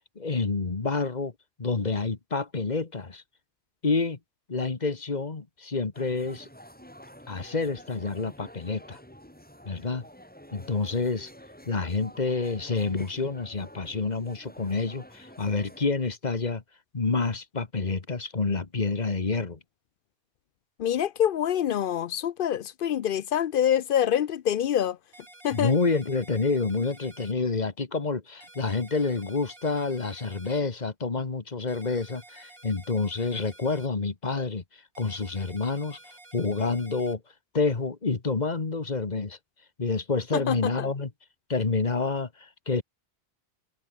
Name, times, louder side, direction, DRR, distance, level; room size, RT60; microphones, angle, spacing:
voice 1, 0.1-1.3 1.6-3.2 3.8-4.2 4.5-6.5 7.3-9.0 9.6-10.0 10.5-11.3 11.6-16.6 16.9-19.6 25.5-34.6 35.0-36.0 36.3-37.2 37.5-39.4 39.8-41.1 41.5-42.8, left 4 dB, 45° left, 1.6 m, -28 dB
sound 1, 5.9-15.9, equal, 10° left, 4.4 m, -49 dB
voice 2, 20.8-25.0 25.4-25.7 40.3-40.9, left 10 dB, 65° left, 0.7 m, -26 dB
sound 2, 25.1-27.3 28.4-30.6 31.7-33.9 34.9-37.2, right 2 dB, 60° right, 4.5 m, -51 dB
omnidirectional pair, 1.1 m